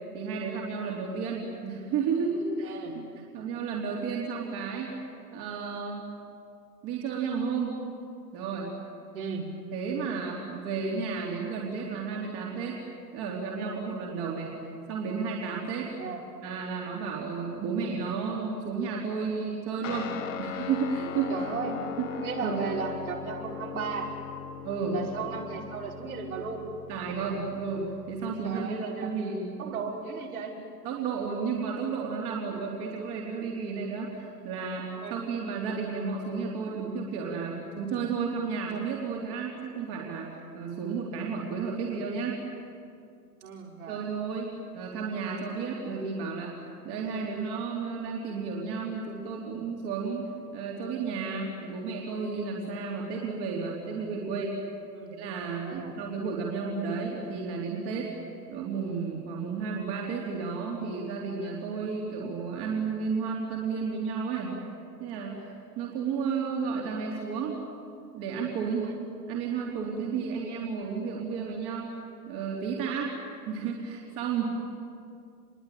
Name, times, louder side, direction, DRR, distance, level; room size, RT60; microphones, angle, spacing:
voice 1, 0.1-2.8 3.3-4.9 5.3-6.1 6.8-7.8 8.3-8.7 9.7-12.8 13.1-14.5 14.9-15.9 16.4-20.1 20.4-21.3 22.1-22.6 24.6-25.0 26.9-29.7 30.8-42.4 43.9-46.5 46.8-54.6 55.1-58.1 58.5-64.5 65.0-65.5 65.8-67.6 68.1-68.9 69.3-72.0 72.3-73.2 73.5-74.5, right 5 dB, 30° right, -2 dB, 3.5 m, -32 dB
voice 2, 2.6-3.0 9.1-9.5 16.0-16.2 21.3-21.8 22.2-24.1 24.9-26.6 28.4-29.1 29.6-30.6 35.0-35.2 43.4-44.0 54.9-55.2 55.6-55.9 68.8-69.0 70.1-70.3, right 5 dB, 55° right, -1 dB, 5.7 m, -35 dB
Guitar, 19.8-28.6, left 8 dB, 50° left, 1.8 m, -40 dB
27.5 x 22.5 x 9.2 m, 2.4 s
figure-of-eight pair, 115°, 50 cm